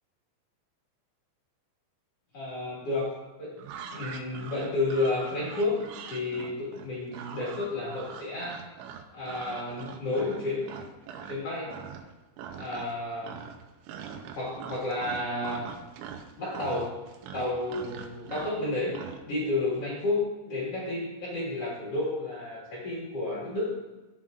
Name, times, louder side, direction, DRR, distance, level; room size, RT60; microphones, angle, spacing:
voice 1, 2.3-3.1 3.4-3.6 3.9-8.7 9.1-10.7 11.2-11.8 12.5-13.4 14.3-15.6 16.4-17.0 17.3-19.0 19.3-23.8, left 2 dB, 45° left, -6 dB, 2.1 m, -31 dB
sound 1, 3.6-11.4 11.7-12.1 12.4-13.0 13.2-19.2, right 7 dB, 90° right, 3.1 m, -42 dB
14.0 x 7.4 x 2.5 m, 1.1 s
omnidirectional pair, 5.4 m